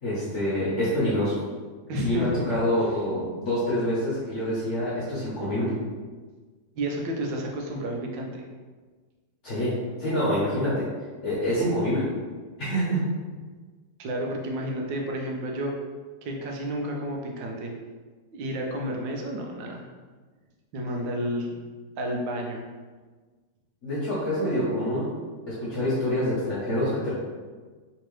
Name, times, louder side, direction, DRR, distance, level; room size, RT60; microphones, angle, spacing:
voice 1, 0.0-1.3 2.0-5.8 9.4-10.9 11.2-12.1 12.6-13.0 23.8-25.1 25.5-27.1, equal, 50° left, -9 dB, 1.1 m, -26 dB
voice 2, 1.9-2.6 6.7-8.4 14.0-15.7 16.2-17.7 18.3-19.8 20.7-21.6 22.0-22.6, equal, 80° right, 0 dB, 1.3 m, -31 dB
3.4 x 3.0 x 3.1 m, 1.4 s
omnidirectional pair, 2.0 m